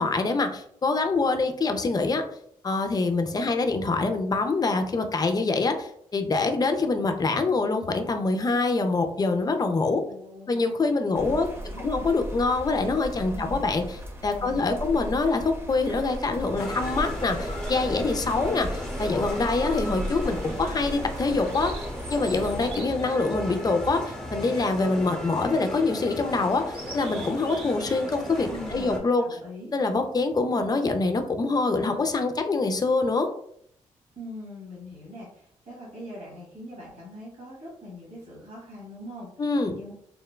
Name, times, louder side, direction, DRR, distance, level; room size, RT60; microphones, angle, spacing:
voice 1, 0.0-2.2 2.6-10.0 10.5-11.5 11.8-13.8 14.2-21.7 22.1-29.2 29.7-33.3 39.4-39.7, left 3 dB, 30° left, 6 dB, 0.4 m, -25 dB
voice 2, 10.0-10.7 11.2-12.1 13.3-13.7 14.3-14.9 28.5-29.8 34.1-39.3 39.7-39.9, left 1 dB, 70° right, -6 dB, 1.3 m, -42 dB
sound 1, 11.1-22.8, equal, 20° right, 0.6 m, -36 dB
sound 2, 16.6-29.0, left 1 dB, 5° left, 0.9 m, -35 dB
sound 3, 17.6-18.1 19.2-19.9 20.3-20.5 21.0-24.5 25.2-25.6 26.0-26.1 26.5-28.0 28.3-28.6, right 2 dB, 40° right, 1.0 m, -46 dB
3.1 x 2.0 x 2.2 m, 0.68 s
supercardioid pair, 50°, 13 cm